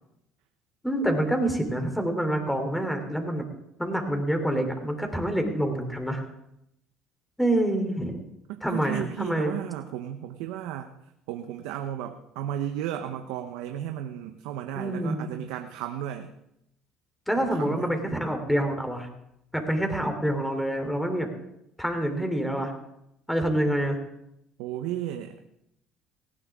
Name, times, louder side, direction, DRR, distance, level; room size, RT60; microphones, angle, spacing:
voice 1, 0.8-3.4 3.8-6.2 7.4-8.2 8.6-9.5 14.7-15.4 17.3-19.1 19.5-21.3 21.8-22.7 23.3-24.0, right 1 dB, 5° left, 5 dB, 3.3 m, -27 dB
voice 2, 8.5-10.9 11.3-16.3 17.4-18.0 24.6-25.3, right 11 dB, 80° right, 6 dB, 0.9 m, -34 dB
18.5 x 16.5 x 3.7 m, 0.80 s
supercardioid pair, 90°, 0 cm